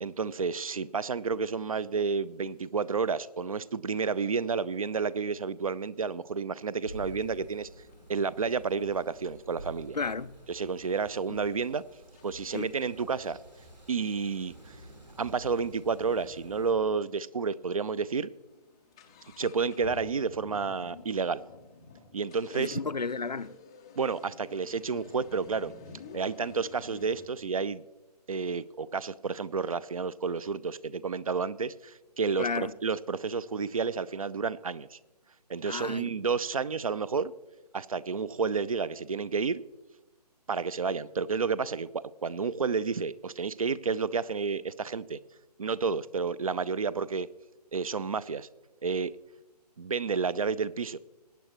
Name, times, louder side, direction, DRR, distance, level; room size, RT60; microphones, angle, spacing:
voice 1, 0.0-7.7 8.1-10.0 10.5-11.8 12.2-13.4 13.9-14.8 15.2-18.3 19.4-21.4 22.1-22.8 24.0-25.7 26.1-27.8 28.3-32.5 32.8-35.0 35.5-37.3 37.7-39.6 40.5-45.2 45.6-47.3 47.7-48.5 48.8-49.1 49.8-51.0, right 5 dB, 55° right, 0.5 m, -30 dB
sound 1, 6.8-16.7, right 1 dB, 90° right, 2.9 m, -50 dB
sound 2, 7.9-8.0 8.4-11.1 11.7-11.8 12.1-12.3 12.7-16.4 16.7-16.8 16.9-17.0 17.7-17.8 18.1-27.3, left 4 dB, 10° left, 0.4 m, -51 dB
voice 2, 9.9-10.4 11.3-11.4 12.5-12.7 22.5-23.6 32.4-32.7 35.7-36.1, left 4 dB, 85° left, 0.6 m, -33 dB
21.5 x 9.2 x 3.0 m
figure-of-eight pair, 145°, 21 cm